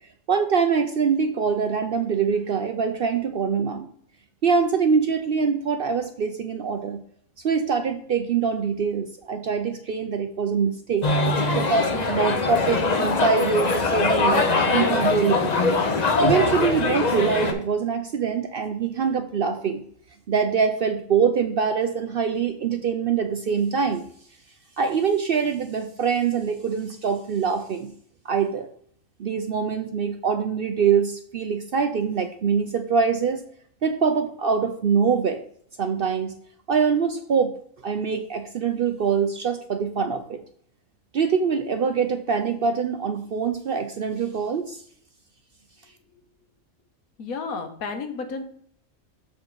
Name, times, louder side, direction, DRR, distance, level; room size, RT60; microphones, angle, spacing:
voice 1, 0.3-3.9 4.4-7.0 7.4-15.6 16.2-19.8 20.3-24.1 24.8-27.9 28.2-28.7 29.2-33.4 33.8-35.4 35.8-36.3 36.7-37.5 37.8-40.4 41.1-44.8, right 6 dB, 60° right, 7 dB, 0.6 m, -24 dB
sound 1, 11.0-17.5, left 3 dB, 40° left, 0.7 m, -22 dB
voice 2, 47.2-48.4, left 4 dB, 85° left, 7 dB, 1.5 m, -32 dB
7.1 x 4.4 x 4.6 m, 0.62 s
omnidirectional pair, 1.5 m